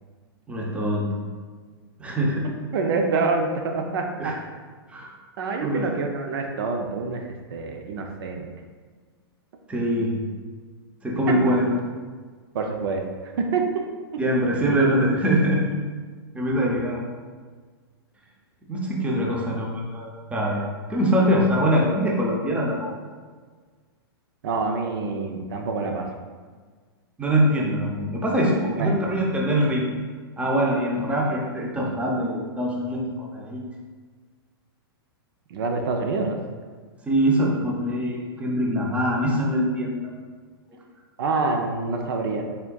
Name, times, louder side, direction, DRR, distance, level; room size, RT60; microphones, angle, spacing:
voice 1, 0.5-1.2 2.0-2.5 4.2-4.3 4.9-5.1 5.6-5.8 9.7-10.2 11.0-11.7 14.2-15.7 16.3-17.0 18.7-20.6 20.9-23.0 27.2-29.8 30.4-33.6 37.1-39.9, equal, 10° right, -2 dB, 0.6 m, -23 dB
voice 2, 2.7-4.3 5.4-7.2 7.5-8.5 12.5-13.0 13.4-13.6 24.4-26.1 28.6-29.1 35.5-36.4 41.2-42.4, right 4 dB, 65° right, 3 dB, 0.5 m, -26 dB
4.3 x 3.6 x 2.3 m, 1.5 s
hypercardioid pair, 130°, 13 cm